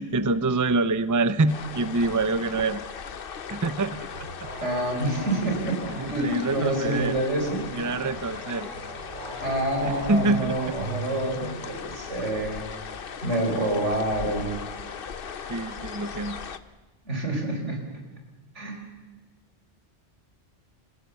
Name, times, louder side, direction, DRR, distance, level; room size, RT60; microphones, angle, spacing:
voice 1, 0.0-2.8 3.5-4.1 6.0-7.1 7.7-8.7 10.1-10.5 15.5-16.4, right 3 dB, 20° right, 14 dB, 0.6 m, -25 dB
sound 1, 1.5-16.6, left 6 dB, 55° left, 1.0 m, -38 dB
sound 2, 4.1-11.7, right 1 dB, 65° right, 3.3 m, -41 dB
voice 2, 4.6-7.7 9.4-12.6 13.2-14.6 17.0-17.8 18.5-18.8, right 1 dB, 85° right, 3 dB, 4.8 m, -27 dB
27.5 x 16.0 x 7.0 m, 1.3 s
omnidirectional pair, 1.2 m